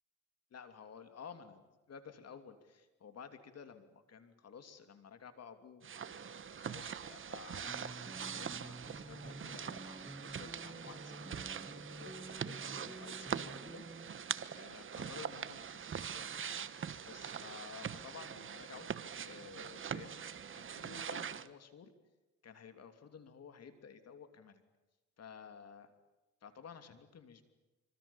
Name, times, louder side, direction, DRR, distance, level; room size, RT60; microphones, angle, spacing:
voice 1, 0.5-16.7 17.1-18.9 19.2-20.2 20.5-21.9 22.4-24.6 25.2-25.9 26.4-27.4, left 6 dB, 55° left, 9 dB, 3.0 m, -54 dB
sound 1, 5.8-21.5, right 7 dB, 40° right, 1.2 m, -43 dB
sound 2, 7.7-14.1, right 2 dB, 10° right, 2.3 m, -50 dB
26.5 x 25.0 x 7.3 m, 1.1 s
cardioid pair, 90°, 30 cm